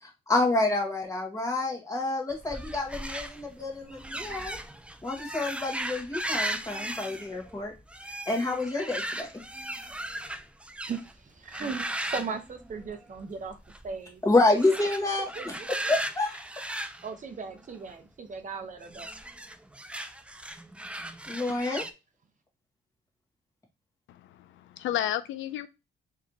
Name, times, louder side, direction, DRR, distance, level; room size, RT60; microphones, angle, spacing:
voice 1, 0.0-4.6 5.0-7.7 8.3-9.3 14.2-16.4 21.3-21.8, left 2 dB, 15° left, 0 dB, 1.6 m, -28 dB
sound 1, 2.3-11.1 11.5-13.2 13.5-13.9 14.5-17.9 18.8-21.9, right 1 dB, 5° right, 0.4 m, -37 dB
voice 2, 10.9-13.6 13.8-14.2 15.4-15.5 17.0-19.1, right 5 dB, 40° right, 7 dB, 0.8 m, -37 dB
voice 3, 24.1-25.7, left 12 dB, 75° left, 12 dB, 0.4 m, -32 dB
4.1 x 3.1 x 2.7 m, 0.25 s
cardioid pair, 90°, 20 cm